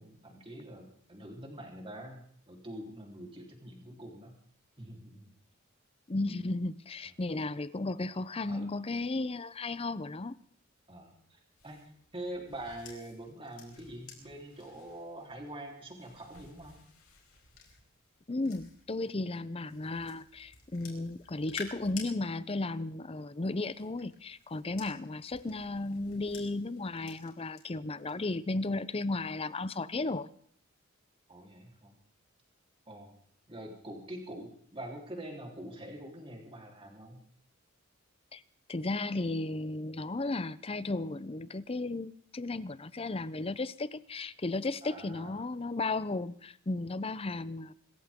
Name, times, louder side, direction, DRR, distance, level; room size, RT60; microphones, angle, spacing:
voice 1, 0.0-4.4 4.8-5.3 8.5-8.8 10.9-11.8 12.1-16.8 31.3-31.9 32.9-33.1 33.5-37.3 44.8-45.4, right 1 dB, 25° right, 3.7 m, -45 dB
voice 2, 6.1-10.4 18.3-30.3 38.3-38.4 38.7-47.7, left 2 dB, 25° left, 0.6 m, -34 dB
sound 1, 11.5-19.1 19.7-22.1 23.4-27.6 28.0-28.3, left 5 dB, 80° left, 4.7 m, -52 dB
25.5 x 14.0 x 3.7 m
head